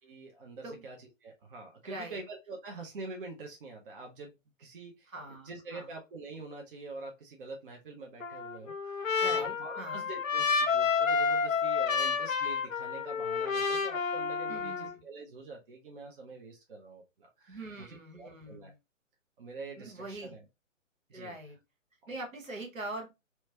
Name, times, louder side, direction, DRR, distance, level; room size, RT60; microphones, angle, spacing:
voice 1, 0.0-18.7 19.4-20.4 21.1-21.3, right 3 dB, 45° right, 2 dB, 0.7 m, -46 dB
voice 2, 1.8-2.2 5.1-5.9 9.2-10.1 14.5-15.0 17.5-18.7 19.8-20.3 21.1-21.6 22.1-23.1, right 1 dB, 80° right, 1 dB, 1.3 m, -43 dB
Trumpet, 8.2-14.9, left 5 dB, 85° left, 0.6 m, -30 dB
2.9 x 2.2 x 2.7 m, 0.24 s
figure-of-eight pair, 130°, 39 cm